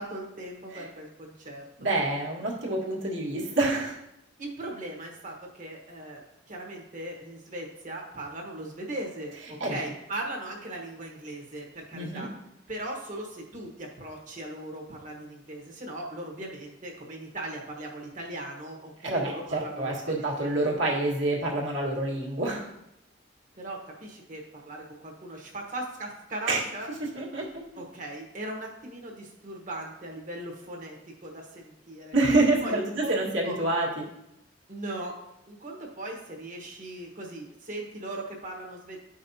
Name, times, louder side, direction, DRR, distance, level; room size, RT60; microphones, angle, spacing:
voice 1, 0.0-1.7 4.4-6.2 6.5-12.3 12.7-20.5 23.5-26.9 27.8-31.0 31.2-32.1 32.6-33.1 33.4-33.6 34.7-35.2 35.5-39.0, right 1 dB, 40° right, 0 dB, 1.2 m, -38 dB
voice 2, 1.8-3.9 9.6-9.8 11.9-12.3 19.0-22.7 26.5-26.6 27.1-27.6 32.1-34.1, right 2 dB, 70° right, -3 dB, 1.6 m, -27 dB
9.5 x 5.3 x 2.8 m, 0.85 s
head